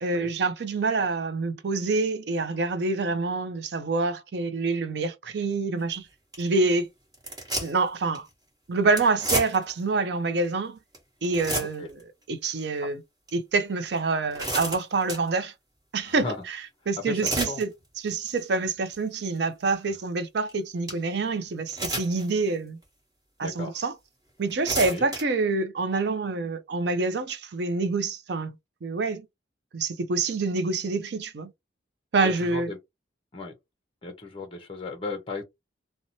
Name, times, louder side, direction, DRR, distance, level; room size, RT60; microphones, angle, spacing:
voice 1, 0.0-6.1 6.4-6.9 7.6-8.3 8.7-10.8 11.2-11.9 12.3-13.0 13.3-15.5 15.9-16.6 16.9-17.7 18.0-22.8 23.4-23.9 24.4-28.5 28.8-29.3 29.7-31.5 32.1-32.7, right 3 dB, 60° right, 0.4 m, -26 dB
sound 1, 5.8-5.9 6.3-6.5 7.1-7.9 8.1-8.3 9.0-9.8 10.4-10.5 10.9-11.0 11.2-12.0 12.5-12.6 13.3-13.4 14.0-15.3 17.0-17.6 18.1-18.4 18.9-19.0 20.5-20.6 20.9-21.0 21.7-22.3 22.8-22.9 23.8-23.9 24.4-25.2, right 1 dB, 20° right, 1.1 m, -31 dB
voice 2, 11.6-11.9 16.0-16.4 17.1-17.6 23.4-23.8 24.9-25.0 32.2-32.8 33.3-33.5 34.0-35.4, left 2 dB, 30° left, 0.6 m, -35 dB
2.6 x 2.1 x 2.8 m
head